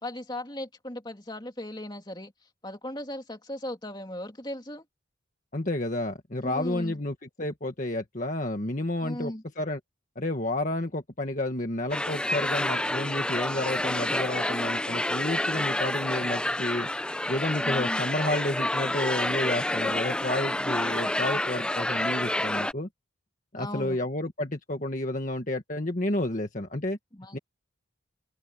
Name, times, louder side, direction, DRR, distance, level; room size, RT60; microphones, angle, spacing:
voice 1, 0.0-2.3 2.6-4.8 6.4-7.0 9.0-9.4 17.6-18.1 23.5-24.0 27.1-27.4, left 1 dB, 20° left, 3.0 m, -37 dB
voice 2, 5.5-9.8 10.1-16.9 17.3-22.9 23.5-27.0 27.3-27.4, left 1 dB, 40° left, 1.6 m, -31 dB
sound 1, 11.9-22.7, left 1 dB, 5° left, 0.5 m, -28 dB
open air
head